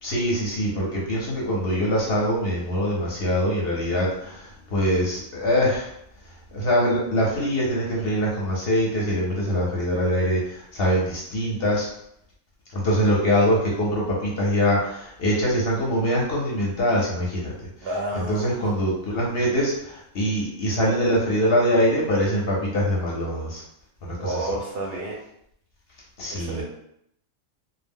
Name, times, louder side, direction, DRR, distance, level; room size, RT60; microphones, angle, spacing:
voice 1, 0.0-5.9 6.5-11.9 12.7-17.5 18.1-23.6 24.0-24.4 26.2-26.6, equal, 55° left, -3 dB, 0.8 m, -23 dB
voice 2, 17.8-18.8 24.2-25.1 26.3-26.6, right 1 dB, 60° right, -3 dB, 0.7 m, -30 dB
2.2 x 2.1 x 3.5 m, 0.74 s
omnidirectional pair, 1.3 m